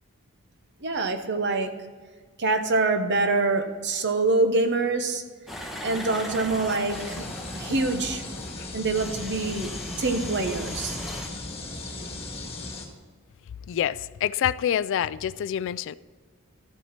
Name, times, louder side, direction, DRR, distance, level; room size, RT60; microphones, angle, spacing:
voice 1, 0.8-1.7 2.4-5.2 5.8-7.3 7.5-8.2 8.7-9.7 10.0-11.0, right 3 dB, 55° right, 1.0 m, -25 dB
sound 1, 5.5-8.5 8.9-11.3, left 1 dB, ahead, 1.1 m, -38 dB
sound 2, 6.9-12.9, left 2 dB, 25° left, 1.7 m, -37 dB
voice 2, 13.7-16.0, left 9 dB, 60° left, 0.3 m, -26 dB
13.5 x 7.2 x 4.3 m
head